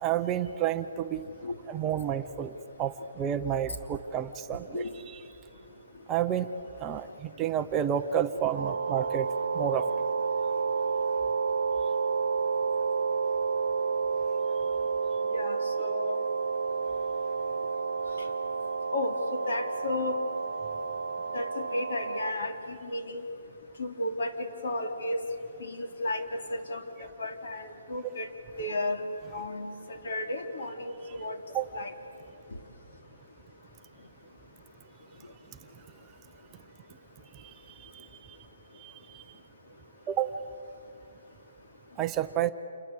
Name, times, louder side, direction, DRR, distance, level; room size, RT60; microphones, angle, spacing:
voice 1, 0.0-1.3 1.7-5.2 6.1-6.5 6.8-9.3 9.5-9.9 31.5-31.7 37.3-38.4 38.8-39.2 40.1-40.3 42.0-42.5, right 10 dB, 15° right, 7 dB, 0.6 m, -30 dB
sound 1, 8.5-22.3, right 5 dB, 85° right, 1.0 m, -30 dB
voice 2, 15.3-16.2 18.9-20.1 21.3-23.2 23.8-24.3 24.6-25.2 25.6-26.8 27.2-28.3 28.6-29.0 29.3-29.7 30.0-31.4 31.7-31.9, left 1 dB, 60° left, 5 dB, 3.3 m, -33 dB
28.0 x 21.5 x 8.3 m, 2.8 s
hypercardioid pair, 170°, 0 cm